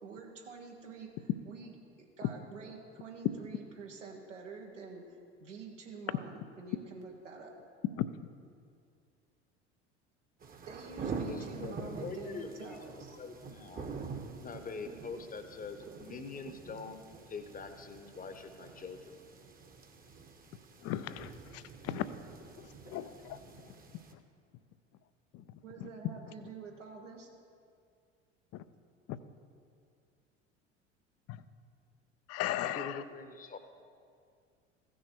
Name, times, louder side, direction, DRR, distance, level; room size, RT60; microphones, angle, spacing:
voice 1, 0.0-7.5 10.6-13.2 25.6-27.3, right 4 dB, 85° right, 0 dB, 1.6 m, -48 dB
sound 1, 10.4-24.1, right 4 dB, 25° right, 1.1 m, -46 dB
voice 2, 11.2-13.9 14.3-17.0 17.3-19.2 32.6-33.6, left 4 dB, 25° left, 8 dB, 1.0 m, -44 dB
voice 3, 20.8-22.1 22.9-23.1 25.3-25.4 25.8-25.9 28.5-28.6 31.3-31.4 32.3-33.0, left 13 dB, 45° left, 14 dB, 0.6 m, -36 dB
15.5 x 6.4 x 4.5 m, 2.2 s
hypercardioid pair, 70°, 36 cm